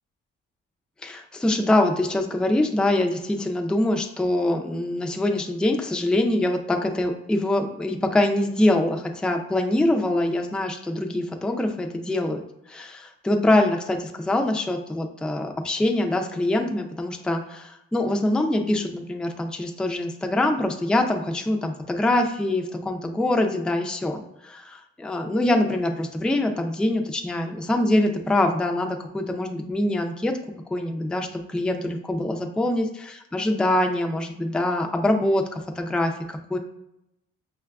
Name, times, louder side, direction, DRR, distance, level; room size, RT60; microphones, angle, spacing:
voice 1, 1.0-12.4 12.7-30.3 30.7-36.6, left 1 dB, 5° left, 3 dB, 0.4 m, -24 dB
5.6 x 2.2 x 2.3 m, 0.85 s
cardioid pair, 90°, 30 cm